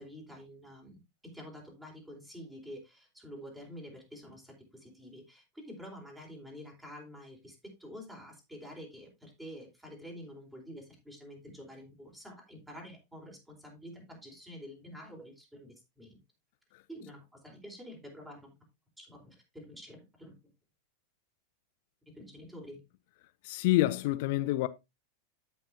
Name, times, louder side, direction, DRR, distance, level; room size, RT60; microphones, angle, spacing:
voice 1, 0.0-16.2 16.9-18.5 19.0-20.3 22.1-22.8, equal, 5° right, 4.2 m, -48 dB
voice 2, 23.4-24.7, left 17 dB, 50° left, 0.5 m, -27 dB
13.5 x 5.8 x 2.7 m
figure-of-eight pair, 90°, 0 cm